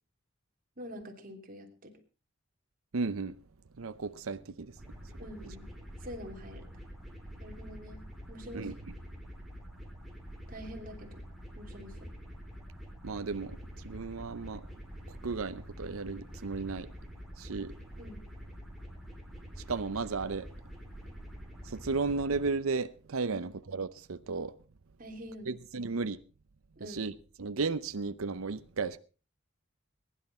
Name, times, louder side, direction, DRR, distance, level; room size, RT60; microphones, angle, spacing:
voice 1, 0.8-2.0 5.2-5.7 6.0-6.7 7.4-8.7 10.5-11.2 11.6-12.1 18.0-18.2 23.2-23.4 25.0-25.6 26.8-27.1, equal, 45° right, 3.1 m, -46 dB
voice 2, 2.9-3.3 3.8-4.8 8.5-8.7 13.0-14.6 15.2-16.9 17.4-17.7 19.7-20.5 21.6-24.5 25.5-26.2 26.8-27.1 27.4-29.0, right 4 dB, 90° right, 0.7 m, -34 dB
sound 1, 4.8-22.5, equal, ahead, 4.2 m, -46 dB
21.5 x 11.0 x 4.3 m
head